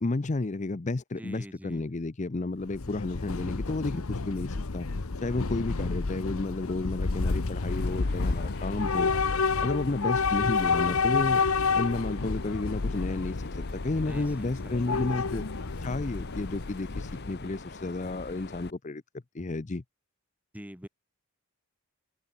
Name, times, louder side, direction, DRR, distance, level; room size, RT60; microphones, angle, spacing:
voice 1, 0.0-4.9 5.2-9.1 9.6-11.4 11.7-15.4 15.8-19.0 19.3-19.8, left 2 dB, 35° left, 0.6 m, -32 dB
voice 2, 1.2-1.8 14.1-15.5 20.5-20.9, equal, 5° right, 2.3 m, -45 dB
Train / Subway metro underground, 2.6-17.5, left 4 dB, 75° left, 1.0 m, -30 dB
Mechanisms, 7.7-18.7, left 3 dB, 50° left, 1.5 m, -44 dB
open air
head